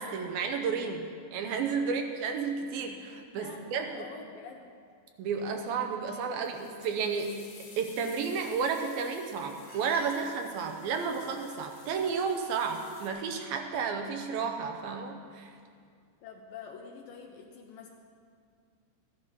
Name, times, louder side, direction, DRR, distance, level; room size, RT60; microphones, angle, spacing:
voice 1, 0.0-3.9 5.2-7.4 7.8-15.5, right 5 dB, 80° right, 4 dB, 2.4 m, -32 dB
voice 2, 3.3-4.7 16.2-17.9, left 6 dB, 75° left, 2 dB, 2.1 m, -46 dB
sound 1, 5.4-6.4 9.1-10.8, right 1 dB, 35° right, 1.3 m, -56 dB
sound 2, 6.4-13.1, left 4 dB, 55° left, 3.4 m, -54 dB
15.0 x 11.0 x 5.4 m, 2.2 s
omnidirectional pair, 4.6 m